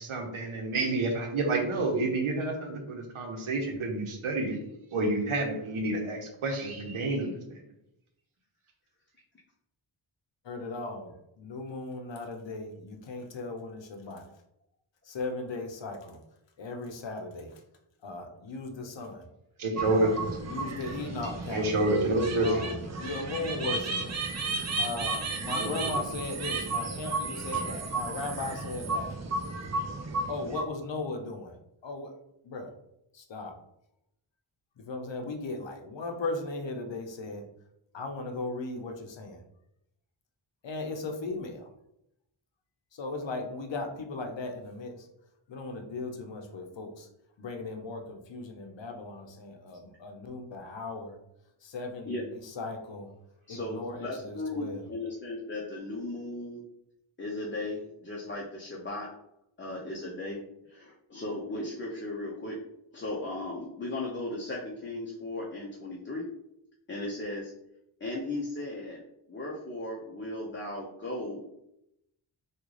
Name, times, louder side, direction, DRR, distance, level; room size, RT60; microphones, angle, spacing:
voice 1, 0.0-4.6 4.9-7.6 19.6-20.2 21.5-22.7 25.5-25.9 27.5-27.6, right 2 dB, 75° right, 3 dB, 0.9 m, -29 dB
voice 2, 10.4-14.3 15.0-16.2 16.6-17.6 18.0-19.3 19.9-20.2 20.4-21.7 22.4-24.2 24.8-29.2 30.3-31.6 31.8-32.1 32.4-32.7 33.1-33.6 34.8-37.5 37.9-39.4 40.6-41.7 42.9-45.1 45.5-47.1 47.4-51.2 51.6-53.1 53.5-54.9, left 3 dB, 60° left, 4 dB, 0.7 m, -37 dB
sound 1, 19.8-30.6, right 3 dB, 35° right, 0.5 m, -33 dB
voice 3, 53.5-56.6 57.2-59.1 59.6-60.4 60.7-62.6 62.9-66.3 66.9-67.5 68.0-69.0 69.3-71.5, left 2 dB, 25° left, -3 dB, 0.6 m, -36 dB
3.6 x 2.4 x 3.1 m, 0.81 s
wide cardioid pair, 60°, 50 cm